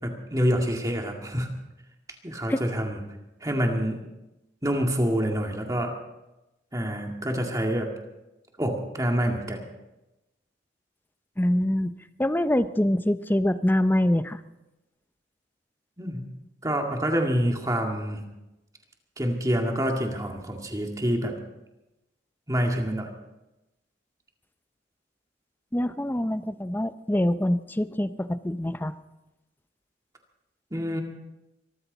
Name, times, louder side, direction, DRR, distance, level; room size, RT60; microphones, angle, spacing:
voice 1, 0.0-1.5 2.2-3.0 3.4-4.0 4.6-6.0 6.7-7.9 8.6-9.6 16.0-16.2 16.6-18.2 19.2-21.3 22.5-23.1 30.7-31.0, equal, 20° right, 2 dB, 2.0 m, -27 dB
voice 2, 11.4-11.9 12.2-14.4 25.7-28.9, left 1 dB, 10° left, 12 dB, 0.5 m, -25 dB
24.0 x 14.0 x 4.0 m, 0.98 s
head